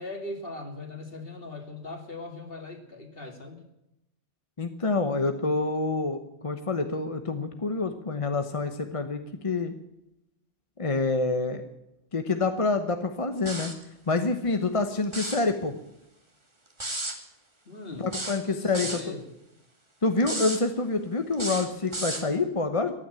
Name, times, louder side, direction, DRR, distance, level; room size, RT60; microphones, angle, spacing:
voice 1, 0.0-3.6 17.7-18.1 18.5-19.2, left 2 dB, 50° left, 4 dB, 2.6 m, -39 dB
voice 2, 4.6-9.7 10.8-11.6 12.1-13.7 14.1-15.7 18.0-19.1 20.0-22.9, left 3 dB, 30° left, 7 dB, 1.0 m, -27 dB
sound 1, 13.5-13.8 15.0-15.5 16.8-17.2 18.1-19.1 20.2-20.6 21.3-22.3, right 1 dB, 25° right, 2.0 m, -33 dB
14.5 x 10.5 x 9.0 m, 0.89 s
omnidirectional pair, 1.2 m